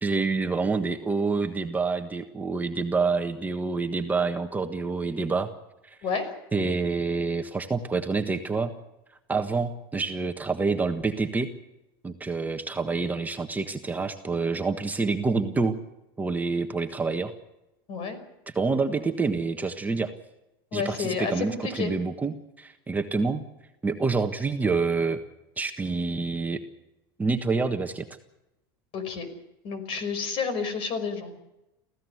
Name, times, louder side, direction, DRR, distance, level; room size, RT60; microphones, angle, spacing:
voice 1, 0.0-5.5 5.8-6.0 6.5-8.7 9.3-11.5 12.0-15.8 16.2-17.3 18.5-20.1 20.7-23.4 23.8-25.2 25.6-26.6 27.2-28.1, right 4 dB, 15° right, 5 dB, 1.4 m, -27 dB
voice 2, 6.0-6.3 17.9-18.2 20.7-21.9 28.9-29.3 29.6-31.3, left 5 dB, 50° left, 11 dB, 5.4 m, -30 dB
24.5 x 15.5 x 8.0 m, 0.92 s
supercardioid pair, 120°, 12 cm